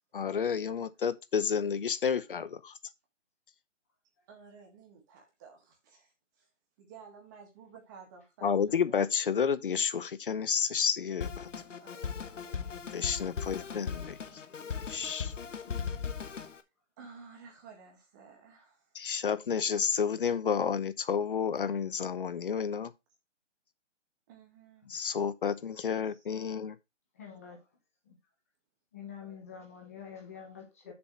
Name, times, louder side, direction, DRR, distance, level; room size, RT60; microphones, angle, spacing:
voice 1, 0.1-2.7 8.4-11.4 12.9-14.2 14.6-15.3 19.0-22.9 24.9-26.8, left 6 dB, 45° left, 0.7 m, -30 dB
voice 2, 4.3-6.5 6.8-9.0 11.8-13.0 13.7-14.6 17.0-18.9 24.3-24.9 26.0-26.3, right 5 dB, 15° right, 1.6 m, -54 dB
Drum kit, 11.2-16.6, left 6 dB, 80° left, 1.3 m, -38 dB
voice 3, 27.1-27.6 28.0-28.2 28.9-30.9, left 7 dB, 10° left, 0.8 m, -46 dB
7.0 x 4.1 x 6.1 m
hypercardioid pair, 170°, 37 cm